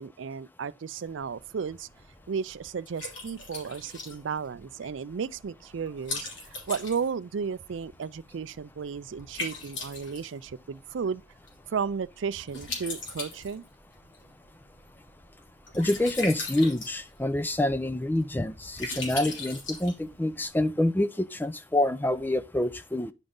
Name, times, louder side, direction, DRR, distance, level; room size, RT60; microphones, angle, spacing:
voice 1, 0.0-1.9 2.3-11.2 11.7-13.6, right 6 dB, 75° right, 0.4 m, -34 dB
Liquid, 1.0-20.5, left 3 dB, 75° left, 3.0 m, -41 dB
voice 2, 15.7-23.1, left 1 dB, 10° left, 0.4 m, -27 dB
9.9 x 5.3 x 3.9 m
head